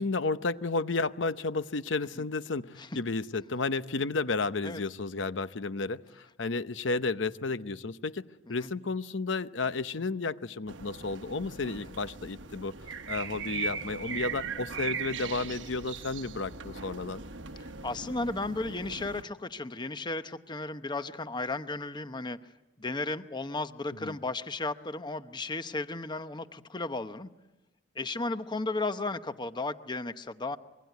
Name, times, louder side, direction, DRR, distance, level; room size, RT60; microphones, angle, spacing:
voice 1, 0.0-8.2 8.5-12.7 13.1-17.2 24.0-24.2, left 3 dB, 75° left, 13 dB, 0.8 m, -32 dB
sound 1, 10.7-19.2, right 5 dB, 85° right, 1.2 m, -39 dB
voice 2, 17.6-22.4 22.8-27.3 27.9-30.6, left 2 dB, 25° left, 11 dB, 0.8 m, -34 dB
26.0 x 22.0 x 9.2 m, 1.1 s
head